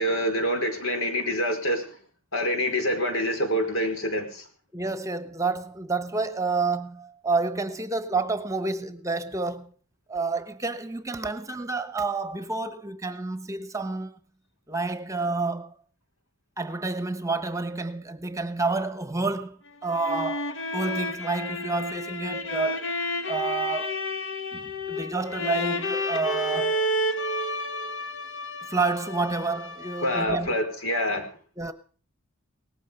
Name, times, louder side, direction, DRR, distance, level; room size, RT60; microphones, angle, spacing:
voice 1, 0.0-2.0 2.3-4.5 30.0-31.3, equal, 75° left, 4.8 m, -26 dB
voice 2, 4.7-9.7 10.1-14.1 14.7-15.7 16.6-22.9 23.3-24.0 24.5-26.9 28.7-30.6 31.6-31.7, right 3 dB, 15° right, 1.1 m, -29 dB
sound 1, 19.7-30.5, left 1 dB, 60° left, 1.3 m, -31 dB
18.5 x 14.5 x 5.3 m
head